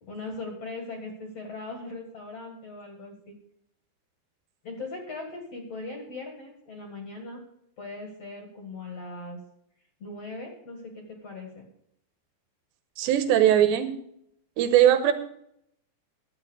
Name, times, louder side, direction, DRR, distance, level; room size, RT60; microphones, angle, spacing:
voice 1, 0.0-3.4 4.6-7.4 7.8-9.4 10.0-11.7, left 3 dB, 45° left, 2 dB, 2.3 m, -39 dB
voice 2, 13.0-13.9 14.6-15.1, right 11 dB, 80° right, 8 dB, 3.2 m, -20 dB
12.0 x 8.4 x 6.4 m, 0.72 s
omnidirectional pair, 5.2 m